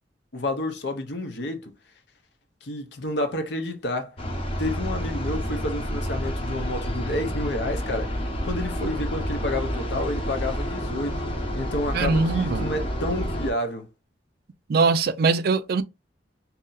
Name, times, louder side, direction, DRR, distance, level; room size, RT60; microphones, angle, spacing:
voice 1, 0.3-1.7 2.6-4.2 4.6-8.2 8.4-11.2 11.5-13.9, left 1 dB, 70° left, 0.8 m, -30 dB
sound 1, 4.2-13.5, equal, 35° left, 0.8 m, -29 dB
voice 2, 11.9-12.7 14.7-15.8, right 4 dB, 60° right, 0.4 m, -22 dB
2.8 x 2.7 x 3.9 m
head